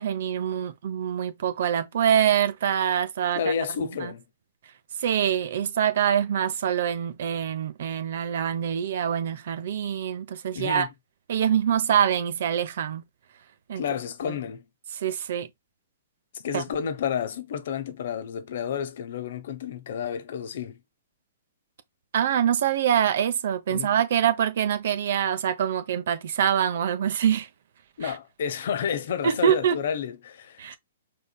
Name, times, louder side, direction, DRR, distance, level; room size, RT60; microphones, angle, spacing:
voice 1, 0.0-3.4 4.0-4.1 5.0-10.9 11.3-13.0 13.7-13.8 14.3-14.4 14.9-15.5 16.5-16.6 22.1-27.5 28.0-28.1 29.2-29.8 30.6-30.8, right 9 dB, 65° right, 0.9 m, -25 dB
voice 2, 3.4-4.2 10.5-10.9 13.7-14.6 16.3-20.8 23.7-23.9 28.0-30.8, left 7 dB, 65° left, 1.0 m, -30 dB
5.3 x 3.8 x 2.3 m
hypercardioid pair, 125°, 0 cm